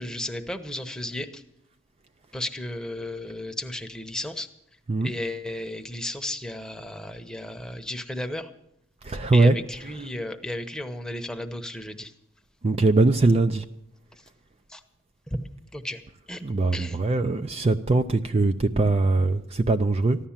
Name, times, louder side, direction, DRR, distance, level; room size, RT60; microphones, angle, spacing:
voice 1, 0.0-1.4 2.3-4.5 5.0-8.5 9.3-12.1 14.7-14.8 15.3-15.5 15.7-16.0 16.3-16.4 16.7-17.0, left 1 dB, 5° left, 0.9 m, -34 dB
voice 2, 9.0-9.6 12.6-13.6 16.4-20.2, right 2 dB, 30° right, 0.5 m, -21 dB
14.5 x 11.5 x 7.3 m
head